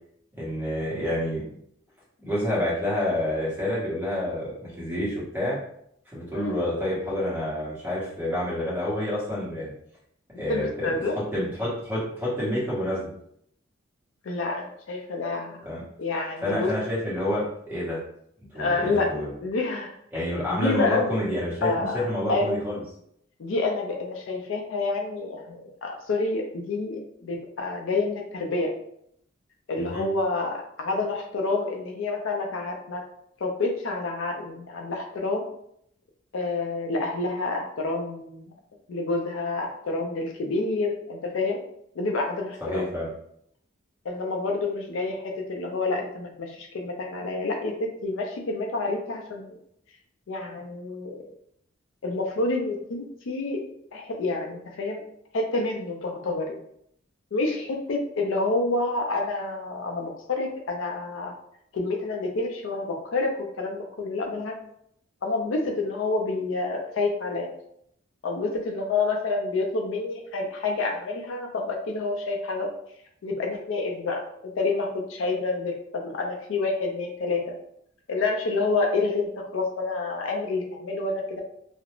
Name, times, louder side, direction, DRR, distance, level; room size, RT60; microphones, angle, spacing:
voice 1, 0.4-1.4 2.2-5.6 6.1-9.7 10.4-10.9 11.3-13.1 15.6-15.8 16.4-18.0 18.5-19.3 20.1-22.8 29.8-30.1 42.6-43.1, left 1 dB, 10° right, -8 dB, 0.9 m, -28 dB
voice 2, 10.3-11.1 14.2-15.6 16.0-16.7 18.5-19.1 19.4-21.1 21.6-22.5 23.4-28.7 29.7-33.0 33.4-35.4 36.3-38.5 38.9-41.6 42.0-42.8 44.0-49.6 50.3-51.2 52.0-53.6 53.9-55.0 55.3-56.6 57.3-61.3 61.7-64.5 65.2-67.5 68.2-72.7 73.2-74.2 74.5-77.5 78.1-81.4, left 3 dB, 75° left, 2 dB, 0.4 m, -28 dB
2.4 x 2.0 x 2.9 m, 0.71 s
head